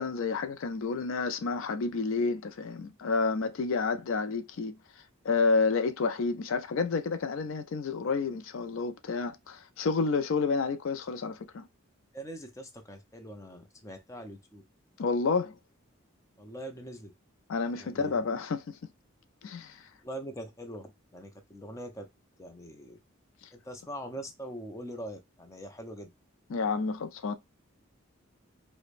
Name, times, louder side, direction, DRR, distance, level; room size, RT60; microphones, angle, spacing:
voice 1, 0.0-11.7 15.0-15.6 17.5-18.8 19.4-19.9 23.4-23.5 26.5-27.3, left 4 dB, 70° left, 0.4 m, -30 dB
voice 2, 12.1-14.6 16.4-17.1 17.8-18.2 20.0-22.1 22.4-23.0 23.5-26.1, right 1 dB, 15° left, 0.6 m, -42 dB
4.9 x 2.1 x 2.4 m
head